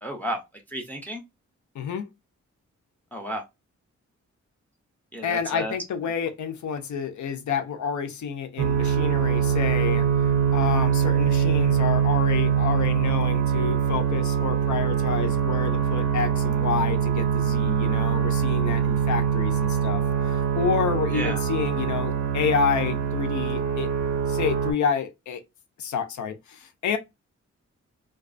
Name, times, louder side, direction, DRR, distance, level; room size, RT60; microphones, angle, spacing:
voice 1, 0.0-0.4 0.7-1.2 3.1-3.4 5.1-5.7 21.1-21.4, right 1 dB, 5° left, 0.5 m, -32 dB
voice 2, 1.7-2.1 5.2-23.9 24.3-25.4 25.8-27.0, left 7 dB, 80° left, 0.6 m, -29 dB
sound 1, 8.6-24.7, right 8 dB, 80° right, 0.6 m, -23 dB
2.4 x 2.3 x 2.4 m
wide cardioid pair, 135°, 29 cm